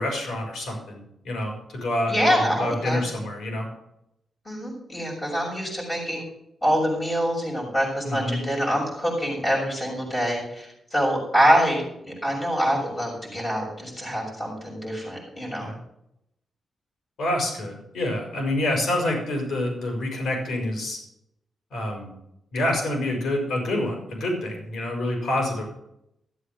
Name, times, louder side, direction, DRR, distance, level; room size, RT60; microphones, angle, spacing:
voice 1, 0.0-3.7 8.0-8.4 15.6-15.8 17.2-21.0 21.7-22.1 22.5-25.6, left 1 dB, 85° left, 1 dB, 5.0 m, -27 dB
voice 2, 2.1-3.2 4.4-6.2 6.6-15.7, equal, 25° left, -4 dB, 6.6 m, -25 dB
14.5 x 8.0 x 6.5 m, 0.80 s
wide cardioid pair, 160°, 0 cm